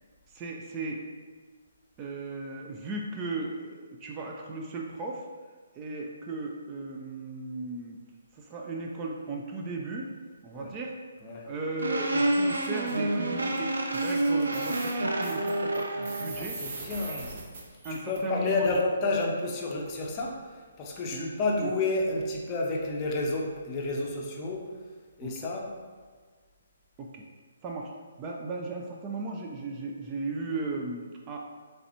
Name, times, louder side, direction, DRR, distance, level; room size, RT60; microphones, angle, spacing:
voice 1, 0.3-1.0 2.0-5.3 5.8-8.0 8.3-10.1 10.4-11.0 11.5-16.6 17.8-18.9 21.1-21.3 21.6-21.7 25.2-25.3 27.0-27.2 27.6-27.9 28.2-31.4, right 2 dB, 25° right, 0 dB, 0.4 m, -36 dB
sound 1, 11.8-16.4, right 1 dB, 75° right, 0.5 m, -28 dB
sound 2, 12.2-13.0 13.6-13.7 13.9-18.2, right 3 dB, 50° right, 0.7 m, -42 dB
voice 2, 16.4-17.4 17.9-24.7 25.2-25.7, left 2 dB, 30° left, -1 dB, 0.6 m, -30 dB
3.9 x 3.3 x 2.9 m, 1.5 s
figure-of-eight pair, 135°, 0 cm